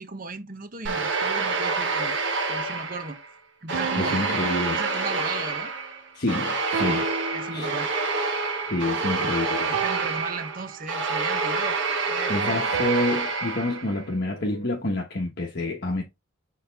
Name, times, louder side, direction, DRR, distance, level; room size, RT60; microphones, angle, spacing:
voice 1, 0.0-2.2 2.5-3.2 3.6-4.4 4.7-5.7 6.8-7.0 7.3-7.9 9.0-11.8 12.1-12.6, right 3 dB, 40° right, 0.9 m, -36 dB
sound 1, 0.9-3.3 3.7-14.0, right 3 dB, 60° right, 1.6 m, -27 dB
sound 2, 0.9-2.4 3.7-5.6 6.7-8.2 9.7-11.2 12.7-15.0, right 5 dB, 80° right, 0.4 m, -36 dB
voice 2, 4.0-4.8 6.1-7.1 7.5-7.7 8.7-9.7 12.3-16.0, left 1 dB, 50° left, 1.0 m, -28 dB
6.6 x 4.1 x 3.5 m
head